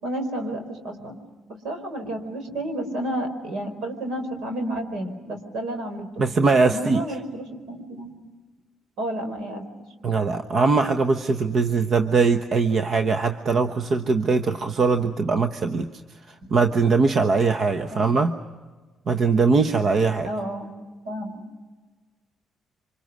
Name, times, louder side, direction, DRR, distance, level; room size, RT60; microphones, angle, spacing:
voice 1, 0.0-1.2 1.5-6.1 6.7-8.1 9.0-9.6 16.4-16.5 17.9-18.0 20.2-20.7 21.0-21.4, right 1 dB, 80° right, 7 dB, 4.8 m, -31 dB
voice 2, 6.2-7.0 10.0-16.0 16.5-18.3 19.1-20.3, right 4 dB, 55° right, 6 dB, 1.2 m, -21 dB
27.5 x 25.5 x 6.3 m, 1.3 s
cardioid pair, 90°, 0 cm